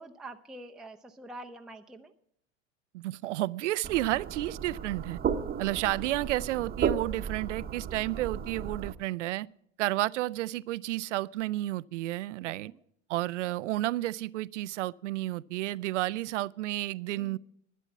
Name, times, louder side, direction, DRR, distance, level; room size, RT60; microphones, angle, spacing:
voice 1, 0.0-2.1 12.4-12.8 17.2-17.4, right 2 dB, ahead, 0.6 m, -46 dB
voice 2, 2.9-5.2 5.6-9.5 9.8-12.7 13.1-17.4, right 16 dB, 70° right, 0.5 m, -31 dB
sound 1, 3.8-8.9, right 7 dB, 25° right, 1.0 m, -34 dB
11.5 x 10.0 x 7.1 m
hypercardioid pair, 80°, 38 cm